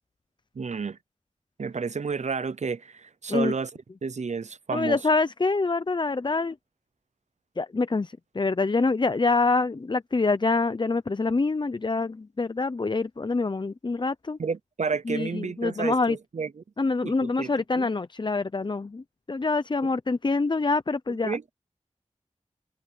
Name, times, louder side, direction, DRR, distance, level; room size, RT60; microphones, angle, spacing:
voice 1, 0.5-1.0 1.6-3.7 4.0-5.0 14.4-16.6 17.0-17.9 19.8-19.9 21.2-21.5, right 5 dB, 70° right, 0.7 m, -31 dB
voice 2, 4.7-6.6 7.6-14.4 15.1-16.2 16.8-19.0 19.3-21.4, left 3 dB, 40° left, 0.6 m, -26 dB
wide cardioid pair, 55°, 12 cm